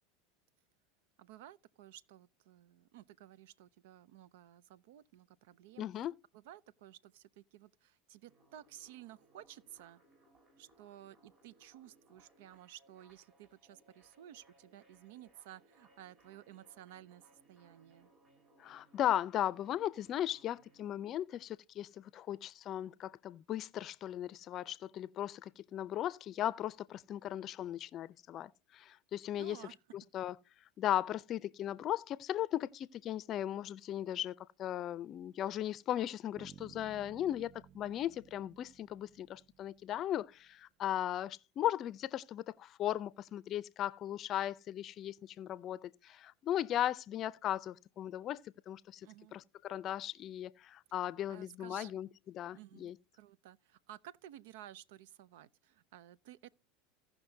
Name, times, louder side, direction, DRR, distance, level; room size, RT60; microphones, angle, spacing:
voice 1, 1.2-5.9 6.3-10.0 10.6-18.1 29.4-29.8 49.0-49.4 51.3-52.0 52.5-56.5, right 12 dB, 75° right, 0.5 m, -55 dB
voice 2, 5.8-6.1 18.6-30.4 30.8-53.0, left 12 dB, 45° left, 0.5 m, -37 dB
sound 1, 8.3-20.9, right 2 dB, 45° right, 3.6 m, -67 dB
Bass guitar, 36.4-40.3, right 8 dB, 30° right, 0.6 m, -58 dB
17.0 x 5.8 x 2.7 m
hypercardioid pair, 95°, 0 cm